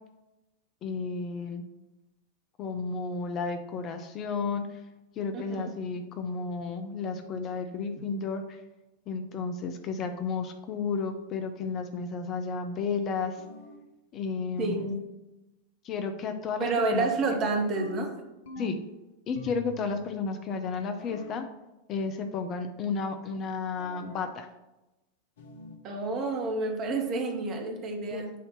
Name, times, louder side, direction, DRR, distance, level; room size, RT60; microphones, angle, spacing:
voice 1, 0.8-1.6 2.6-4.8 5.2-8.4 9.1-13.4 14.1-14.8 15.8-17.3 18.6-18.8 19.3-21.5 21.9-24.5 28.1-28.2, left 4 dB, 30° left, 6 dB, 0.6 m, -32 dB
voice 2, 5.3-5.7 14.6-15.0 16.6-18.1 25.8-28.3, right 3 dB, 35° right, 3 dB, 1.3 m, -29 dB
sound 1, 13.4-13.9 14.6-15.1 17.8-18.9 19.3-20.0 21.0-21.5 23.8-24.3 25.4-25.9, left 1 dB, 60° left, 0.8 m, -45 dB
8.4 x 2.8 x 5.9 m, 0.99 s
figure-of-eight pair, 90°, 0 cm